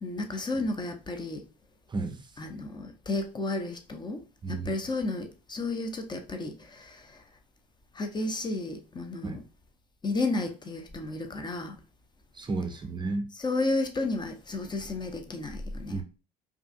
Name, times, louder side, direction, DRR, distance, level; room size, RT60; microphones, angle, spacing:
voice 1, 0.0-1.4 2.4-4.2 4.5-7.0 7.9-9.4 10.0-11.8 13.4-16.0, left 2 dB, 20° left, 0.7 m, -32 dB
voice 2, 1.9-2.2 4.4-4.7 9.2-9.4 12.3-13.3 15.9-16.0, right 3 dB, 20° right, 0.6 m, -32 dB
4.8 x 2.7 x 2.4 m
hypercardioid pair, 65°, 20 cm